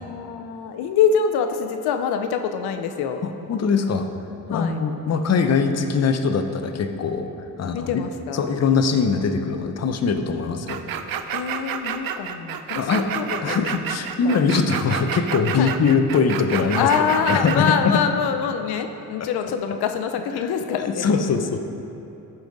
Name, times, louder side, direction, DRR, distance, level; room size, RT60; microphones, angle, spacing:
voice 1, 0.0-3.2 4.5-4.8 7.7-8.5 11.3-13.7 14.2-14.4 15.6-15.7 16.7-21.1, left 7 dB, 90° left, 7 dB, 0.6 m, -25 dB
voice 2, 3.2-4.1 4.5-7.3 7.6-7.9 8.3-10.8 12.8-13.1 13.4-18.0 19.2-19.3 20.4-20.5 20.8-21.6, left 5 dB, 45° left, 6 dB, 0.7 m, -22 dB
sound 1, 10.7-17.8, right 8 dB, 65° right, 0.6 m, -29 dB
13.5 x 5.3 x 3.9 m, 2.9 s
cardioid pair, 90°, 37 cm